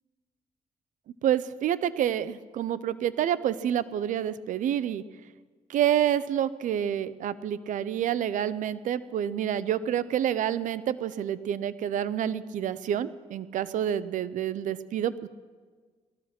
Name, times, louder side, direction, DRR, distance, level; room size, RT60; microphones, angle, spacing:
voice 1, 1.2-5.0 5.7-15.3, right 10 dB, 75° right, 16 dB, 0.7 m, -28 dB
18.0 x 13.5 x 6.0 m, 1.5 s
cardioid pair, 75°, 13 cm